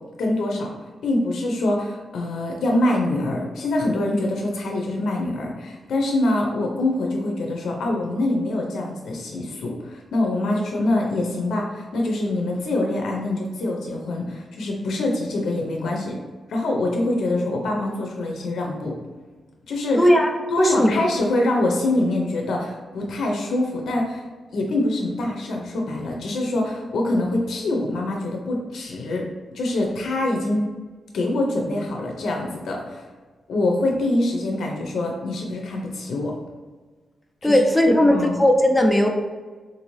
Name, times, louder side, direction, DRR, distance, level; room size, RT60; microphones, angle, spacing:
voice 1, 0.2-0.7 1.0-16.2 16.5-18.9 19.7-20.1 20.5-24.2 24.5-29.3 29.5-30.6 31.1-33.1 33.5-36.3 37.4-37.6 37.9-38.4, left 2 dB, 85° left, 0 dB, 0.6 m, -24 dB
voice 2, 20.0-20.3 20.6-20.9 37.4-39.1, left 1 dB, 5° left, 1 dB, 0.4 m, -17 dB
3.9 x 2.6 x 3.0 m, 1.4 s
wide cardioid pair, 160°, 0 cm